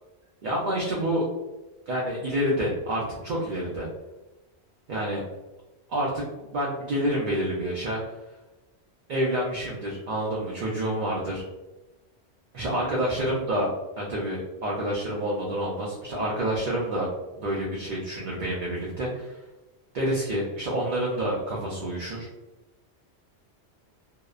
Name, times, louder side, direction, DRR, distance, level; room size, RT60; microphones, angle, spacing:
voice 1, 0.4-1.2 1.9-3.9 4.9-5.2 5.9-6.3 6.5-8.0 9.1-11.4 12.5-13.7 14.0-17.1 17.4-19.4 19.9-22.3, right 1 dB, 55° right, -4 dB, 0.6 m, -28 dB
2.8 x 2.0 x 2.3 m, 1.1 s
omnidirectional pair, 1.2 m